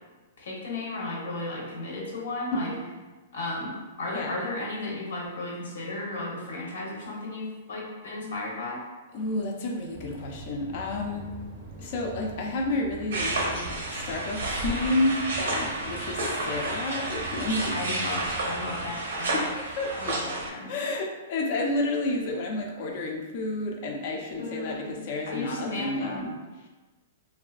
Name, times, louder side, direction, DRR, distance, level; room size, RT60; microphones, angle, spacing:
voice 1, 0.4-2.7 3.3-8.8 17.7-19.4 20.0-20.7 24.4-24.9 25.3-26.2, left 2 dB, 85° left, -3 dB, 0.8 m, -34 dB
voice 2, 2.6-2.9 4.1-4.3 9.1-11.3 11.8-18.1 19.3-20.2 20.7-26.4, left 2 dB, 45° left, 0 dB, 0.4 m, -30 dB
sound 1, 9.9-18.9, right 2 dB, 30° right, 0.5 m, -44 dB
sound 2, 13.1-20.5, right 2 dB, 80° right, 0.6 m, -31 dB
2.7 x 2.3 x 2.3 m, 1.2 s
hypercardioid pair, 160°, 0 cm